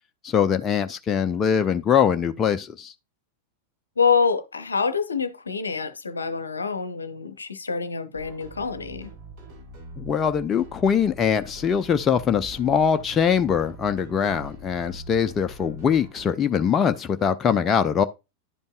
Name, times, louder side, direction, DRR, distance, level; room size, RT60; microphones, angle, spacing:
voice 1, 0.2-2.9 10.0-18.0, left 7 dB, 25° left, 0.5 m, -22 dB
voice 2, 4.0-9.1, left 5 dB, 75° left, 0.7 m, -26 dB
sound 1, 8.1-16.3, right 2 dB, 45° right, 4.0 m, -43 dB
11.0 x 5.3 x 2.3 m
figure-of-eight pair, 90°, 0 cm